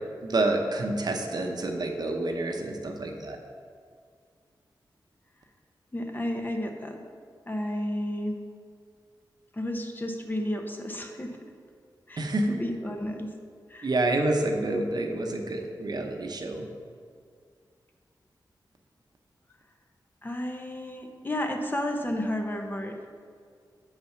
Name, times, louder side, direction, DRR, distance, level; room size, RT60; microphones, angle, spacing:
voice 1, 0.2-3.4 12.2-12.5 13.8-16.7, right 2 dB, 60° right, 3 dB, 0.9 m, -28 dB
voice 2, 5.9-7.0 7.5-8.4 9.5-11.4 12.1-13.3 13.7-13.9 20.2-23.1, left 1 dB, 25° left, 3 dB, 0.9 m, -32 dB
6.7 x 5.6 x 5.7 m, 2.1 s
cardioid pair, 65°, 8 cm